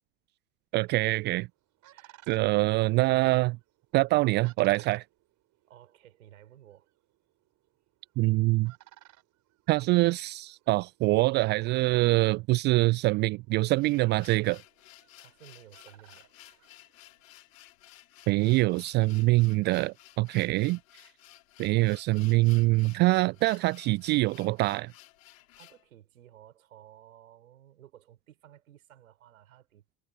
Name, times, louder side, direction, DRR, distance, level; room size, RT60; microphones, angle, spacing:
voice 1, 0.7-1.5 2.3-3.6 3.9-5.0 8.2-8.7 9.7-14.6 18.3-20.8 21.6-24.9, right 21 dB, 25° right, 0.4 m, -24 dB
sound 1, 1.2-17.4, right 15 dB, 40° right, 5.4 m, -61 dB
voice 2, 1.9-2.7 5.7-6.9 15.2-16.3 25.6-29.8, right 11 dB, 70° right, 5.9 m, -55 dB
sound 2, 13.5-25.9, left 15 dB, 65° left, 4.2 m, -55 dB
figure-of-eight pair, 80°, 43 cm